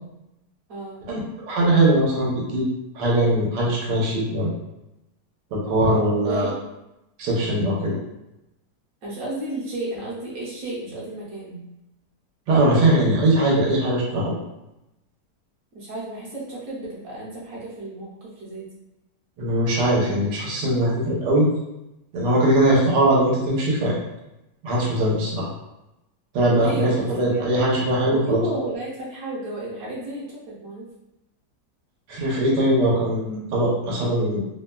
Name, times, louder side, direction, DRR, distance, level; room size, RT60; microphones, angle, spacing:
voice 1, 0.7-1.0 6.2-6.6 9.0-11.6 15.7-18.7 26.6-27.4 28.1-30.9, right 1 dB, 60° right, -7 dB, 1.2 m, -32 dB
voice 2, 1.5-2.7 2.9-4.5 5.5-6.5 7.2-8.0 12.5-14.3 19.4-21.5 22.1-24.0 24.6-25.5 26.3-28.4 32.1-34.4, right 1 dB, 90° right, -5 dB, 1.4 m, -20 dB
3.2 x 2.1 x 2.2 m, 0.92 s
omnidirectional pair, 1.8 m